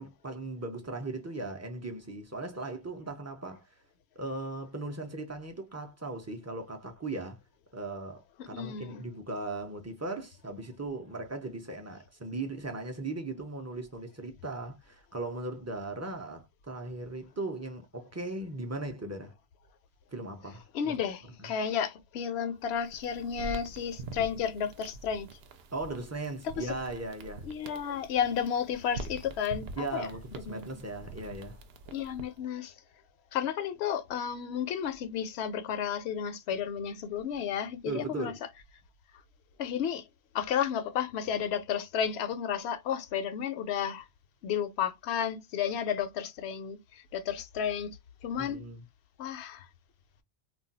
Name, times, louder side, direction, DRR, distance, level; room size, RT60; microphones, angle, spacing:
voice 1, 0.0-3.7 4.2-7.4 7.7-19.3 20.1-20.9 21.4-21.5 25.7-27.5 29.8-31.6 37.9-38.4 48.4-48.8, right 2 dB, 25° right, 0.3 m, -38 dB
voice 2, 8.5-9.0 20.7-25.3 26.6-26.7 27.4-30.1 30.5-30.8 31.9-32.7 33.3-38.3 39.6-40.1 40.3-44.0 44.4-48.7 49.2-49.7, left 8 dB, 80° left, 0.8 m, -32 dB
sound 1, 22.6-32.4, right 3 dB, 70° right, 0.8 m, -45 dB
2.3 x 2.2 x 3.9 m
omnidirectional pair, 1.1 m